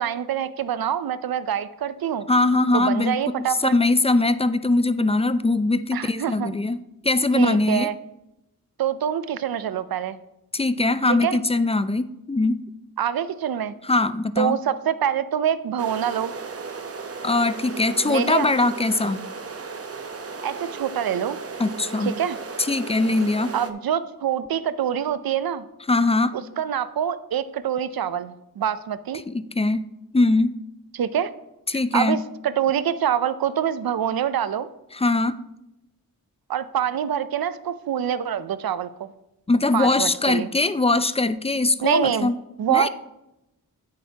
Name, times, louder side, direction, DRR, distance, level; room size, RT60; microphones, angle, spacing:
voice 1, 0.0-2.3 2.7-3.7 5.9-6.5 7.3-7.9 8.8-10.2 11.1-11.4 13.0-13.7 14.4-16.3 18.0-18.5 20.4-21.4 22.0-22.4 23.5-25.6 26.3-29.2 30.9-31.3 31.9-34.7 36.5-39.1 39.7-40.5 41.8-42.3 42.6-42.9, right 9 dB, 75° right, 14 dB, 0.6 m, -25 dB
voice 2, 2.3-7.9 10.5-12.6 13.8-14.6 17.2-19.2 21.6-22.1 22.6-23.5 25.9-26.3 29.3-29.8 30.1-30.5 31.7-32.2 34.9-35.4 39.5-42.4 42.7-42.9, left 2 dB, 15° left, 13 dB, 0.5 m, -21 dB
sound 1, 15.8-23.7, right 4 dB, 40° right, 0.8 m, -35 dB
9.1 x 8.7 x 2.9 m, 0.89 s
cardioid pair, 50°, 36 cm